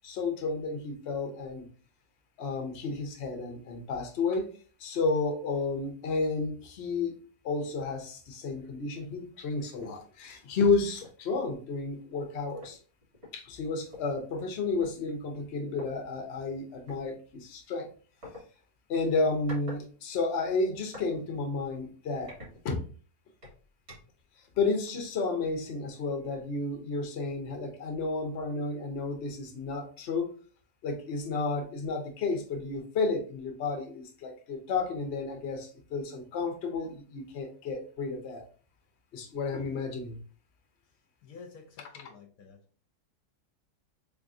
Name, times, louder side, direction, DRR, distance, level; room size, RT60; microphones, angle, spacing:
voice 1, 0.0-1.7 2.4-4.5 4.8-7.2 7.4-12.8 13.3-17.9 18.9-22.3 22.6-22.8 24.6-30.3 30.8-38.4 39.1-40.2, left 3 dB, 50° left, 0.9 m, -32 dB
sound 1, 9.8-10.0 10.5-10.6 11.0-11.3 12.3-12.4 12.6-14.0 14.8-14.9 15.7-15.9 16.9-17.0 18.2-18.4 19.1-19.8 20.1-21.1 21.6-21.7 22.2-23.0 23.4-24.2, left 2 dB, 40° right, 2.1 m, -47 dB
voice 2, 41.2-42.6, left 5 dB, 70° left, 1.1 m, -50 dB
3.5 x 3.4 x 2.6 m
omnidirectional pair, 1.7 m